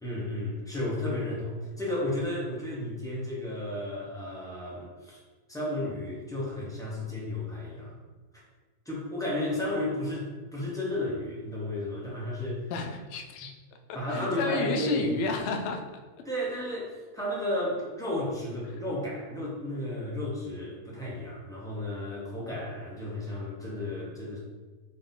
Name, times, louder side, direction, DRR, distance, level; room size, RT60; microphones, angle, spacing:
voice 1, 0.0-5.2 5.5-8.0 8.3-8.4 8.9-12.6 13.9-15.4 16.2-24.4, left 1 dB, 5° left, -6 dB, 0.6 m, -33 dB
voice 2, 12.7-13.5 13.9-15.8, left 4 dB, 75° left, 4 dB, 0.6 m, -32 dB
4.1 x 2.7 x 3.7 m, 1.3 s
omnidirectional pair, 1.7 m